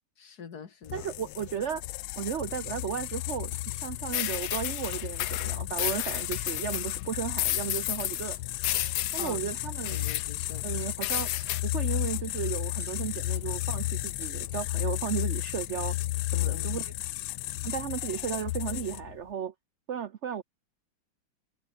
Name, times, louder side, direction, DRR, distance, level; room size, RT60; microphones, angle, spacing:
voice 1, 0.2-1.1 9.2-9.6 9.9-10.7 16.3-16.9, left 6 dB, 50° left, 2.1 m, -44 dB
sound 1, 0.8-19.2, left 17 dB, 90° left, 1.4 m, -33 dB
voice 2, 0.9-1.8 2.2-3.5 3.8-8.4 9.1-10.0 10.6-11.3 11.6-16.0 16.3-16.9 17.6-19.5 19.9-20.4, right 8 dB, 70° right, 0.6 m, -34 dB
sound 2, 3.2-15.1, left 3 dB, 20° left, 1.8 m, -54 dB
sound 3, 4.1-7.0 7.4-8.3 8.6-9.3 9.9-10.2 11.0-11.6, left 13 dB, 70° left, 0.8 m, -32 dB
omnidirectional pair, 2.2 m